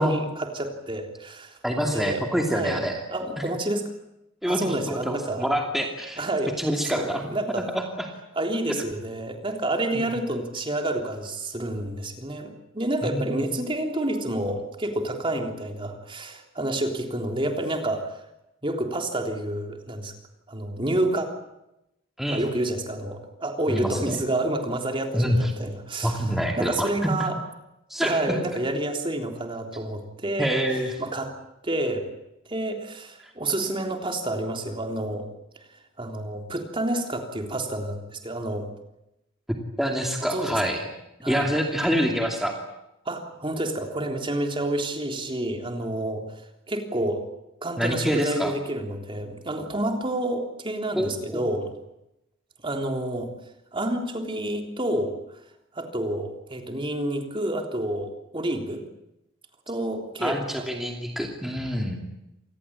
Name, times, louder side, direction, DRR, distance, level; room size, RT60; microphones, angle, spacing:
voice 1, 0.0-2.2 2.5-3.9 4.5-5.5 6.2-6.6 6.9-7.7 8.4-18.2 18.6-20.1 20.5-21.3 22.3-26.2 26.6-27.4 28.0-30.5 31.0-31.3 31.6-32.1 32.5-35.3 36.0-38.7 40.3-40.6 41.2-41.5 43.1-47.3 47.6-51.7 52.6-53.3 53.7-55.4 55.7-58.8 59.7-60.6, right 1 dB, 25° right, 4 dB, 3.5 m, -29 dB
voice 2, 1.6-3.0 4.4-6.2 6.6-7.2 7.7-8.1 9.9-10.1 13.0-13.4 22.2-22.4 23.7-24.2 25.1-25.5 26.0-27.1 27.9-28.4 30.4-31.0 39.5-40.8 41.2-42.5 47.8-48.5 51.0-51.4 60.2-62.0, equal, ahead, 2 dB, 2.7 m, -26 dB
27.5 x 20.0 x 8.9 m, 0.88 s
head